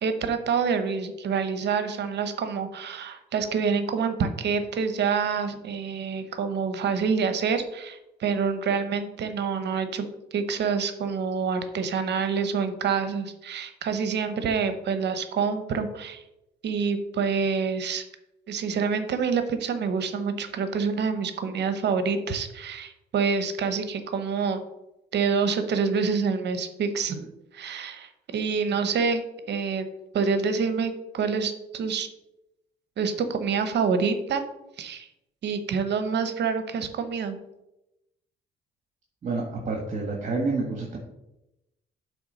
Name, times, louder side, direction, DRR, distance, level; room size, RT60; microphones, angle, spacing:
voice 1, 0.0-10.1 10.3-16.2 16.6-18.0 18.5-24.6 25.1-27.3 27.5-29.2 29.5-29.9 30.1-32.1 33.0-34.4 34.8-35.1 35.4-37.4, right 5 dB, 60° right, 9 dB, 0.9 m, -27 dB
voice 2, 39.2-41.0, right 3 dB, 40° right, 0 dB, 1.5 m, -28 dB
8.2 x 3.5 x 6.2 m, 0.90 s
cardioid pair, 80°, 20 cm